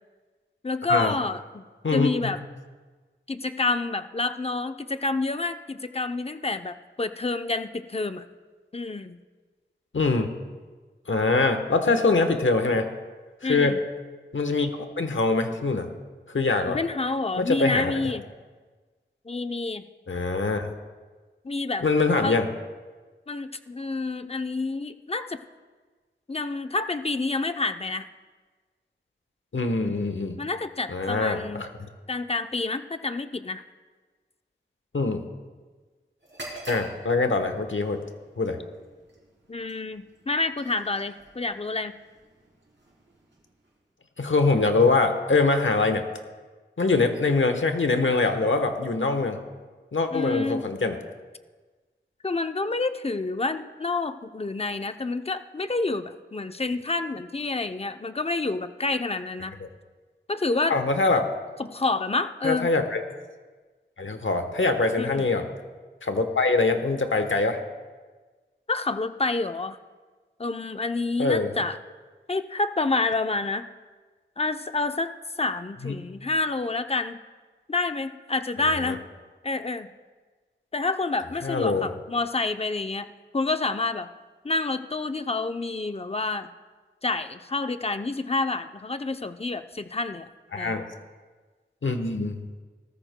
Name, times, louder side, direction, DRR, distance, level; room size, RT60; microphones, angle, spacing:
voice 1, 0.6-1.6 1.9-2.4 3.3-8.2 8.7-9.2 13.4-13.8 16.7-18.2 19.3-19.8 21.4-21.9 22.2-22.4 23.3-25.4 26.3-28.1 30.4-31.6 32.1-33.6 39.5-41.9 50.1-50.7 52.2-59.5 60.3-60.8 61.6-62.7 65.0-65.3 68.7-69.8 70.4-71.8 72.3-73.7 74.4-75.1 75.4-77.2 77.7-79.0 79.4-79.9 80.7-83.1 83.3-84.1 84.4-86.5 87.0-90.3 90.6-90.9, left 3 dB, 30° left, 9 dB, 0.6 m, -28 dB
voice 2, 1.8-2.3 9.9-10.3 11.1-12.9 13.5-13.7 14.3-15.9 16.3-16.8 17.4-17.9 20.1-20.7 21.8-22.5 29.5-30.4 30.9-31.7 34.9-35.2 36.7-38.0 38.4-38.6 44.2-46.0 46.8-49.4 49.9-51.0 60.7-61.3 62.4-63.0 64.0-65.5 66.0-67.6 71.2-71.5 75.8-75.9 78.8-78.9 81.4-81.9 90.5-90.8 91.8-92.4, left 3 dB, 80° left, 6 dB, 1.1 m, -23 dB
sound 1, 36.2-44.0, right 1 dB, 70° right, 3.4 m, -47 dB
18.5 x 14.0 x 2.2 m, 1.4 s
wide cardioid pair, 60°, 20 cm